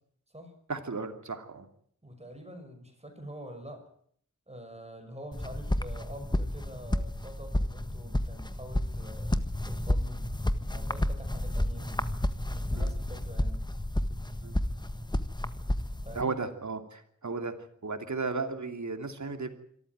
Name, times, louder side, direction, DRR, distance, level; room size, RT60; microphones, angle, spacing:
voice 1, 0.7-1.7 12.7-12.9 14.4-14.5 16.1-19.5, right 4 dB, 70° right, 7 dB, 2.9 m, -35 dB
voice 2, 2.0-3.9 4.5-10.2 10.7-11.9 12.5-13.7 16.0-16.3, equal, 20° right, 6 dB, 5.8 m, -46 dB
sound 1, 5.3-16.2, left 1 dB, 15° left, 1.5 m, -31 dB
25.5 x 14.0 x 9.4 m, 0.64 s
wide cardioid pair, 75°, 30 cm